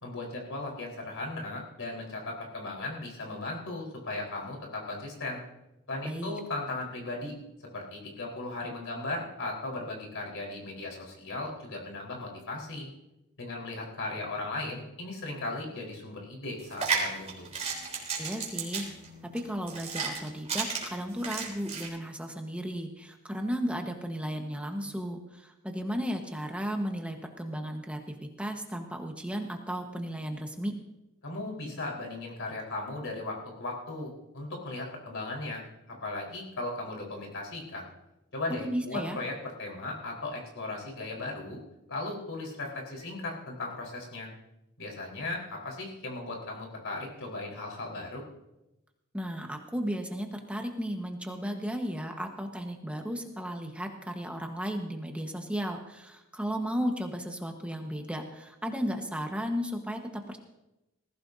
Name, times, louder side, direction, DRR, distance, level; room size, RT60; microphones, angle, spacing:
voice 1, 0.0-5.4 5.9-7.3 7.7-12.9 13.4-17.5 31.2-37.9 38.3-41.6 41.9-44.3 44.8-48.2, left 2 dB, 65° left, 0 dB, 4.3 m, -37 dB
voice 2, 6.0-6.4 18.2-18.9 19.3-30.7 38.5-39.2 49.1-60.4, equal, 5° right, 3 dB, 1.3 m, -34 dB
sound 1, 16.6-21.9, right 5 dB, 30° right, 3.7 m, -33 dB
19.5 x 16.0 x 2.7 m, 0.94 s
head